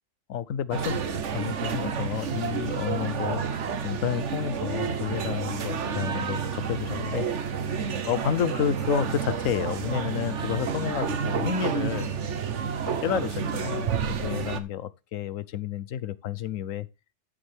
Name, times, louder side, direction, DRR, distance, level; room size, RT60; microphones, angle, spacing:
voice 1, 0.3-1.0 1.3-7.3 7.6-7.8 8.0-12.1 12.9-16.9, left 9 dB, 90° left, 1.2 m, -30 dB
sound 1, 0.7-14.6, right 6 dB, 65° right, 1.4 m, -30 dB
13.0 x 7.2 x 3.5 m
omnidirectional pair, 1.3 m